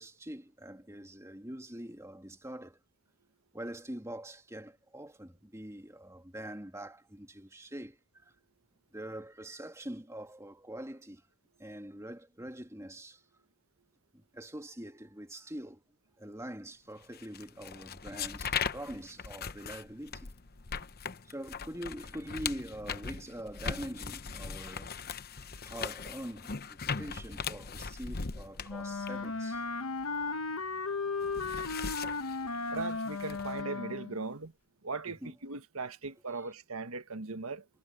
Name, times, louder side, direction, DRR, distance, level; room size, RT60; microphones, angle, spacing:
voice 1, 0.0-2.8 3.5-8.3 8.9-11.2 11.6-13.2 14.1-15.8 16.2-20.3 21.2-25.0 25.6-29.6 35.1-35.3 36.3-36.5, right 1 dB, 15° right, 2.6 m, -44 dB
sound 1, 17.1-30.6 31.0-33.6, left 6 dB, 45° left, 0.9 m, -39 dB
Wind instrument woodwind instrument, 28.7-34.2, left 4 dB, 85° left, 1.1 m, -35 dB
voice 2, 32.7-34.5 34.8-37.7, right 3 dB, 90° right, 1.4 m, -39 dB
head